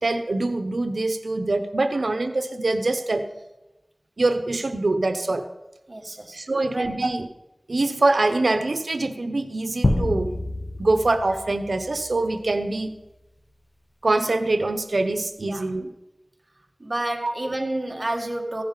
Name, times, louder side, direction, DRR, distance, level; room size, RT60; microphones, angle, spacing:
voice 1, 0.0-3.3 4.2-5.4 6.3-7.3 7.7-10.3 10.8-12.9 14.0-15.9 17.2-17.3, right 2 dB, 90° right, 8 dB, 0.8 m, -24 dB
voice 2, 5.9-6.9 15.5-15.6 16.8-18.6, right 1 dB, 45° right, 3 dB, 1.7 m, -30 dB
sound 1, 9.8-12.4, left 1 dB, 50° left, 0.9 m, -27 dB
15.5 x 11.0 x 3.9 m, 0.97 s
wide cardioid pair, 55°, 0 cm